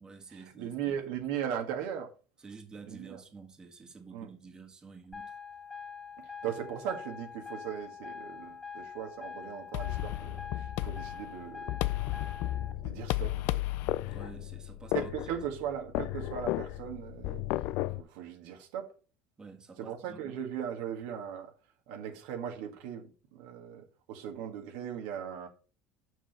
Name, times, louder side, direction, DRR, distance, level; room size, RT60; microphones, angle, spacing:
voice 1, 0.0-1.0 2.4-5.4 6.4-6.6 14.1-15.3 19.4-20.4, right 4 dB, 25° right, 1.8 m, -50 dB
voice 2, 0.6-2.1 2.9-3.2 4.1-4.3 6.4-11.8 12.8-13.6 14.9-17.4 18.0-18.9 19.8-21.5 21.9-25.5, right 9 dB, 80° right, 1.8 m, -38 dB
sound 1, 5.1-12.7, left 6 dB, 10° left, 2.7 m, -44 dB
sound 2, 9.7-18.0, left 16 dB, 70° left, 0.4 m, -34 dB
6.4 x 5.5 x 5.3 m
supercardioid pair, 90°, 3 cm